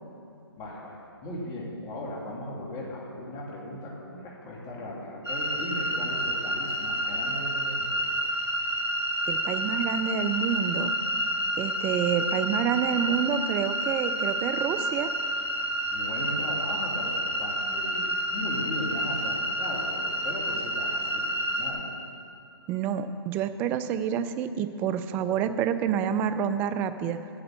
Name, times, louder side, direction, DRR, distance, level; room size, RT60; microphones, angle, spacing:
voice 1, 0.6-8.0 15.9-21.9, left 1 dB, 20° left, -3 dB, 2.2 m, -37 dB
sound 1, 5.2-21.7, equal, 80° right, 1.9 m, -29 dB
voice 2, 9.3-10.9 11.6-15.1 22.7-27.2, right 8 dB, 15° right, 11 dB, 0.3 m, -28 dB
8.8 x 7.8 x 7.6 m, 2.6 s
figure-of-eight pair, 140°, 13 cm